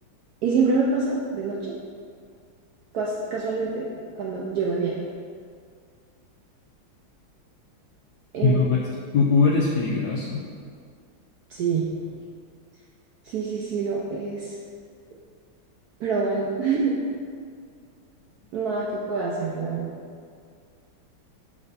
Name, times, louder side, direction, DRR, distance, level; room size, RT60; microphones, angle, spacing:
voice 1, 0.4-1.8 2.9-3.9 4.2-5.0 8.3-8.6 11.5-11.9 13.2-14.6 16.0-16.9 18.5-19.9, right 4 dB, 75° right, -3 dB, 0.8 m, -26 dB
voice 2, 8.4-8.8 9.1-10.4, left 4 dB, 85° left, -2 dB, 0.8 m, -21 dB
7.2 x 3.2 x 4.0 m, 2.2 s
omnidirectional pair, 2.2 m